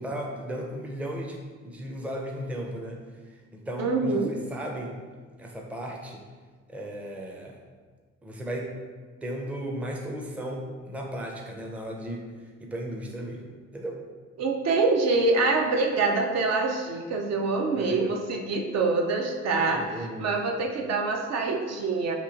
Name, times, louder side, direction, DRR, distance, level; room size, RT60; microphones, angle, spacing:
voice 1, 0.0-1.4 1.6-3.0 3.5-5.0 5.4-6.2 6.7-7.6 8.2-8.7 9.2-12.2 12.6-13.5 13.7-13.9 17.8-18.1 19.6-20.3, right 1 dB, 5° right, 0 dB, 0.5 m, -35 dB
voice 2, 3.8-4.4 14.4-22.1, right 3 dB, 60° right, 2 dB, 0.5 m, -25 dB
2.9 x 2.7 x 3.8 m, 1.5 s
cardioid pair, 90°, 30 cm